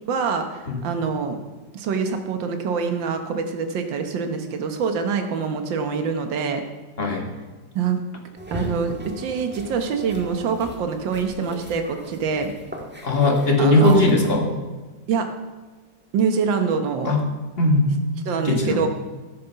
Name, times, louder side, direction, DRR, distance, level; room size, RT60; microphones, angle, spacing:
voice 1, 0.1-1.4 1.7-6.6 7.8-8.0 8.5-12.5 13.6-14.0 15.1-15.3 16.1-17.1 18.3-18.9, right 5 dB, 80° right, 6 dB, 1.8 m, -25 dB
sound 1, 8.4-14.4, right 1 dB, 5° right, 1.4 m, -37 dB
voice 2, 13.0-14.5 17.0-17.2 17.6-17.9 18.4-18.8, left 2 dB, 30° left, 1 dB, 2.1 m, -18 dB
14.0 x 9.3 x 5.8 m, 1.3 s
omnidirectional pair, 2.0 m